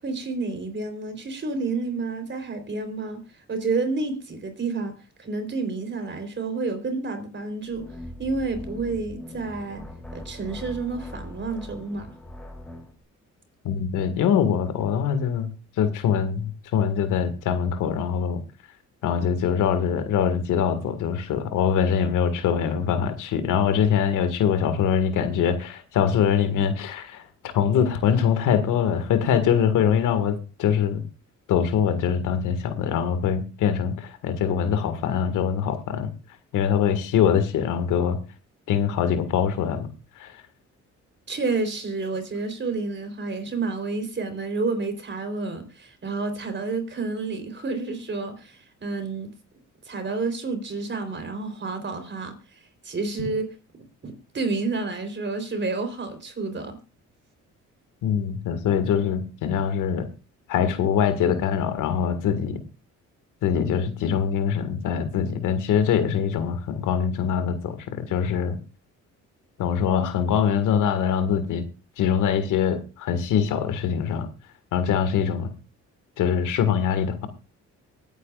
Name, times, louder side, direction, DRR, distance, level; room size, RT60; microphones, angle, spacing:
voice 1, 0.0-3.2 3.5-7.9 8.2-9.9 10.1-12.1 41.3-49.3 49.9-53.5 54.0-56.8, right 3 dB, 40° right, 3.8 m, -30 dB
sound 1, 7.7-12.9, left 1 dB, 5° left, 3.1 m, -40 dB
voice 2, 13.6-15.5 15.8-18.4 19.0-31.0 31.5-36.1 36.5-38.2 38.7-39.9 40.2-40.4 58.0-60.1 60.5-62.6 63.4-68.6 69.6-71.6 72.0-74.3 74.7-75.6 76.2-77.3, left 8 dB, 90° left, 1.9 m, -23 dB
24.0 x 9.5 x 2.5 m
cardioid pair, 90°, 30 cm